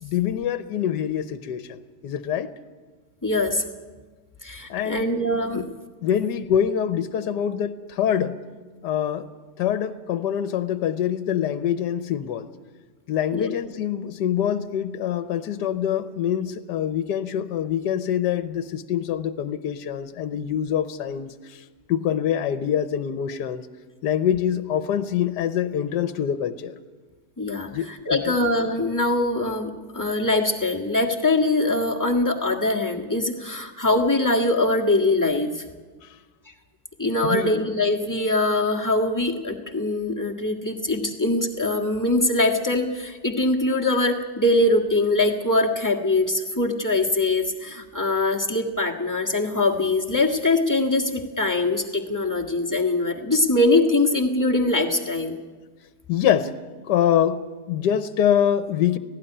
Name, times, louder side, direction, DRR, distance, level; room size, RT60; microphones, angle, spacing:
voice 1, 0.0-2.5 4.7-5.0 5.5-5.7 6.0-8.5 8.8-9.3 9.6-12.5 13.1-21.3 21.9-23.6 24.0-26.7 27.7-28.3 37.2-37.5 55.4-55.5 56.1-56.5 56.9-59.0, left 9 dB, 80° left, 11 dB, 1.4 m, -25 dB
voice 2, 3.2-3.6 4.4-5.7 13.3-13.5 27.4-35.6 37.0-55.4, left 2 dB, 10° left, -1 dB, 1.5 m, -22 dB
17.5 x 16.5 x 9.9 m, 1.4 s
omnidirectional pair, 1.8 m